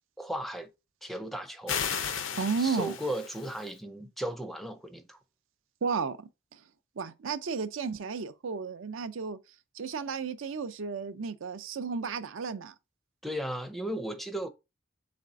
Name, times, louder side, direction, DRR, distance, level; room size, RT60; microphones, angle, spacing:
voice 1, 0.2-0.7 1.0-1.8 2.6-5.2 13.2-14.5, right 1 dB, ahead, 0.4 m, -35 dB
sound 1, 1.7-3.7, left 7 dB, 80° left, 0.6 m, -34 dB
voice 2, 2.4-2.9 5.8-6.6 7.0-9.4 9.7-12.7, right 5 dB, 85° right, 0.5 m, -33 dB
4.2 x 3.4 x 3.6 m
head